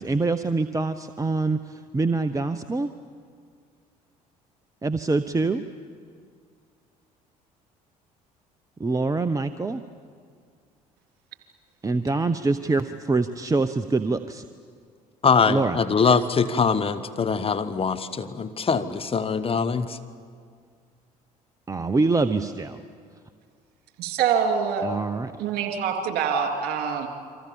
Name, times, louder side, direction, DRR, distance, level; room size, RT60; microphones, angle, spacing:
voice 1, 0.0-2.9 4.8-5.6 8.8-9.8 11.8-14.4 15.5-15.8 21.7-22.8 24.8-25.3, right 3 dB, 15° right, 11 dB, 1.0 m, -25 dB
voice 2, 15.2-20.0, left 5 dB, 30° left, 11 dB, 1.4 m, -23 dB
voice 3, 24.0-24.9 25.4-27.1, right 7 dB, 55° right, 4 dB, 3.4 m, -25 dB
29.0 x 24.5 x 7.2 m, 2.1 s
figure-of-eight pair, 55°, 19 cm